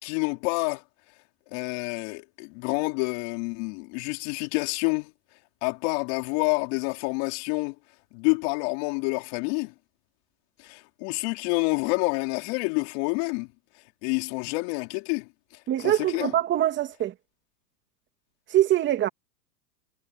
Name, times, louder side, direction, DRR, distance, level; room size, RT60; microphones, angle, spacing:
voice 1, 0.0-0.8 1.5-5.1 5.6-7.8 8.1-9.7 10.6-13.5 14.0-15.3 15.8-16.3, left 32 dB, 40° left, 4.4 m, -28 dB
voice 2, 15.7-17.1 18.5-19.1, right 12 dB, 20° right, 2.6 m, -23 dB
hypercardioid pair, 140°, 49 cm